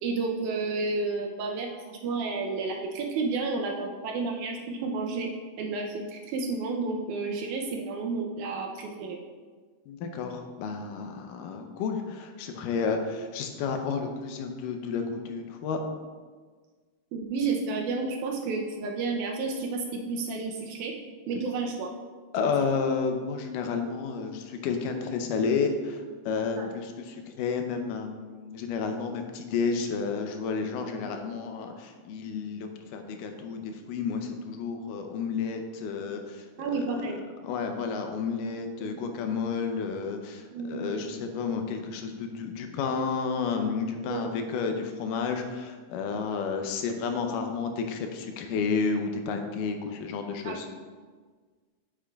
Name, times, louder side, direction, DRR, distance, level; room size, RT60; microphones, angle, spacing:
voice 1, 0.0-5.3 5.6-9.2 17.1-20.9 21.3-21.9 22.4-22.5 26.6-26.8 36.6-37.2 38.8-38.9 40.5-41.0 44.0-44.3 47.2-47.4 50.4-50.6, right 4 dB, 80° right, 1 dB, 2.0 m, -31 dB
voice 2, 9.9-15.8 22.3-36.9 37.4-50.7, left 5 dB, 90° left, 5 dB, 2.3 m, -31 dB
8.6 x 7.2 x 2.3 m, 1.5 s
omnidirectional pair, 3.7 m